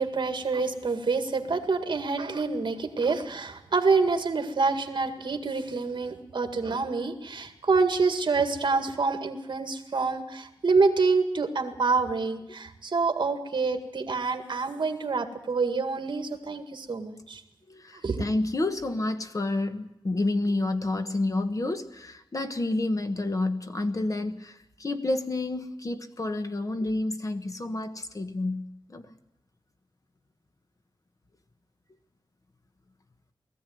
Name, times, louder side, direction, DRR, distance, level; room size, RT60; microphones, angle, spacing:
voice 1, 0.0-17.4 18.0-18.2, right 4 dB, 60° right, 7 dB, 1.9 m, -27 dB
voice 2, 17.7-28.6 28.9-29.1, left 2 dB, 40° left, 8 dB, 1.4 m, -29 dB
19.0 x 14.5 x 9.3 m, 0.89 s
wide cardioid pair, 125°, 9 cm